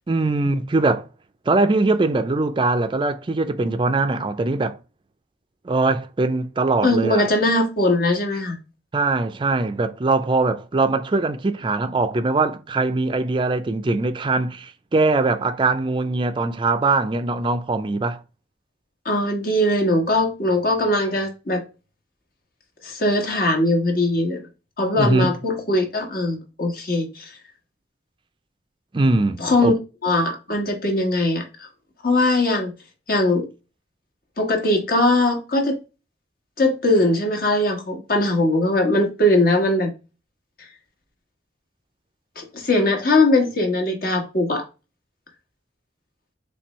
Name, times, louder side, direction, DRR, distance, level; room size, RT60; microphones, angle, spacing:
voice 1, 0.1-1.1 1.5-4.8 5.6-7.3 8.9-18.2 25.0-25.3 28.9-29.7, right 3 dB, 30° right, 0.4 m, -21 dB
voice 2, 6.8-8.6 19.0-21.6 22.8-24.4 24.8-27.3 29.4-29.8 30.0-31.7 32.0-32.7 33.1-33.5 34.4-35.7 36.6-39.9 42.4-44.6, left 1 dB, 55° left, 1.3 m, -20 dB
4.4 x 3.2 x 3.0 m
head